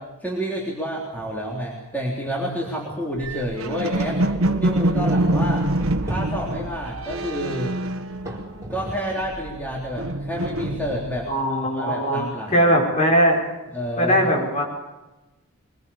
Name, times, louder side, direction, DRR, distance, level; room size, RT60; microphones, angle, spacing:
voice 1, 0.2-4.2 4.6-5.7 6.0-7.7 8.7-12.7 13.7-14.3, equal, 5° left, -3 dB, 3.6 m, -29 dB
sound 1, 1.0-1.5 1.9-2.0 2.6-2.7 3.2-9.3 9.6-13.9, equal, 15° right, 4.8 m, -41 dB
sound 2, 3.2-8.8 9.1-11.3, right 1 dB, 70° right, 1.5 m, -25 dB
voice 2, 11.3-12.2 12.5-13.4 14.0-14.6, equal, 30° left, -1 dB, 5.9 m, -19 dB
23.0 x 22.0 x 7.1 m, 1.1 s
head